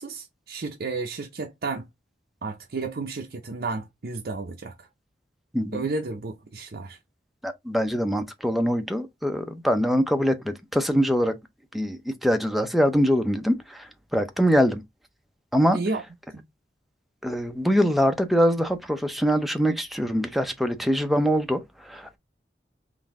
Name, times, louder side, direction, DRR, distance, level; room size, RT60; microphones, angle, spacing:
voice 1, 0.0-1.9 2.4-4.9 5.7-7.0 15.7-16.0 16.3-16.4, right 3 dB, 55° right, 0.6 m, -32 dB
voice 2, 5.5-5.9 7.4-11.4 11.7-14.8 15.5-15.8 17.2-22.2, equal, ahead, 0.5 m, -23 dB
3.9 x 2.6 x 3.5 m
head